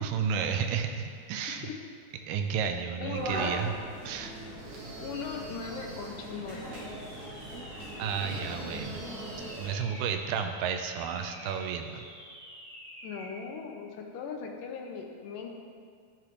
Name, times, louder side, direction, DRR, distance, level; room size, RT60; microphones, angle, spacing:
voice 1, 0.0-1.7 2.3-3.7 4.0-4.3 8.0-9.0 9.6-12.1, right 7 dB, 85° right, 6 dB, 2.3 m, -32 dB
voice 2, 3.0-3.4 5.0-6.8 13.0-15.5, left 6 dB, 80° left, 2 dB, 2.4 m, -39 dB
sound 1, 3.1-9.7, right 1 dB, 40° right, 2.9 m, -40 dB
sound 2, 4.6-6.3 8.1-9.8, right 4 dB, 65° right, 1.8 m, -48 dB
sound 3, 6.5-13.4, equal, 25° right, 1.5 m, -48 dB
12.0 x 6.6 x 3.1 m, 2.1 s
omnidirectional pair, 3.9 m